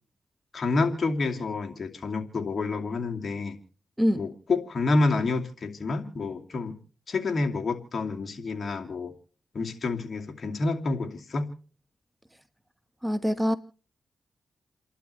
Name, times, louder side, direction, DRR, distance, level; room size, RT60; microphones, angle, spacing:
voice 1, 0.5-3.6 4.1-6.8 7.1-9.1 9.5-11.5, left 3 dB, 55° left, 2.6 m, -28 dB
voice 2, 13.0-13.6, equal, 10° right, 1.4 m, -24 dB
29.5 x 11.5 x 3.3 m
cardioid pair, 55°, 0 cm